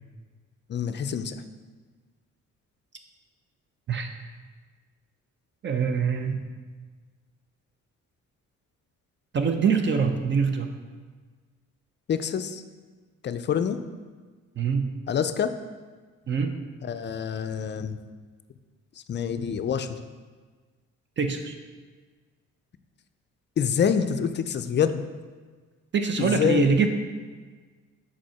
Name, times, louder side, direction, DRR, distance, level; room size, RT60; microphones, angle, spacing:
voice 1, 0.7-1.4 12.1-12.6 13.2-13.8 15.1-15.5 16.8-18.0 19.1-20.0 23.6-25.0 26.2-26.7, left 7 dB, 40° left, 10 dB, 0.4 m, -26 dB
voice 2, 5.6-6.4 9.3-10.7 14.6-14.9 16.3-16.5 21.2-21.6 25.9-26.9, right 5 dB, 40° right, 6 dB, 0.6 m, -24 dB
5.1 x 4.2 x 5.7 m, 1.4 s
cardioid pair, 90°, 30 cm